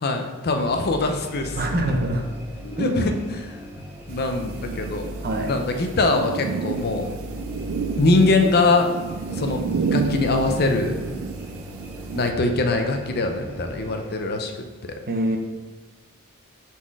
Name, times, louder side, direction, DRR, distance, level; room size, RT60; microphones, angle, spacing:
voice 1, 0.0-1.6 2.6-3.4 4.1-5.1 5.5-7.1 8.0-8.9 9.4-10.9 12.1-14.5, left 3 dB, 45° left, 5 dB, 0.6 m, -22 dB
sound 1, 0.5-14.2, equal, 10° right, 0.7 m, -38 dB
voice 2, 1.6-2.3 2.8-3.1 5.2-5.5 15.1-15.4, right 1 dB, 45° right, 4 dB, 0.8 m, -24 dB
sound 2, 4.1-12.3, right 5 dB, 65° right, 0.3 m, -31 dB
6.0 x 4.2 x 4.7 m, 1.2 s
head